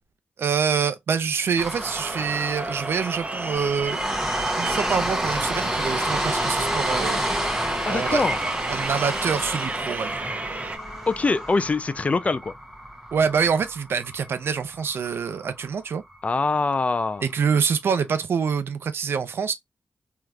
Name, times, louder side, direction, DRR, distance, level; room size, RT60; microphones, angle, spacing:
voice 1, 0.4-4.0 4.6-7.2 7.9-10.2 13.1-16.0 17.2-19.5, right 6 dB, 75° right, 0.6 m, -26 dB
sound 1, 1.6-15.7 16.1-16.2 16.5-16.6, right 1 dB, 5° right, 1.0 m, -30 dB
sound 2, 1.8-10.8, right 3 dB, 35° right, 0.6 m, -32 dB
sound 3, 3.4-11.7, left 3 dB, 70° left, 0.9 m, -42 dB
voice 2, 7.8-8.4 11.1-12.5 16.2-17.2, left 3 dB, 35° left, 0.3 m, -23 dB
3.3 x 2.8 x 2.3 m
wide cardioid pair, 90°, 4 cm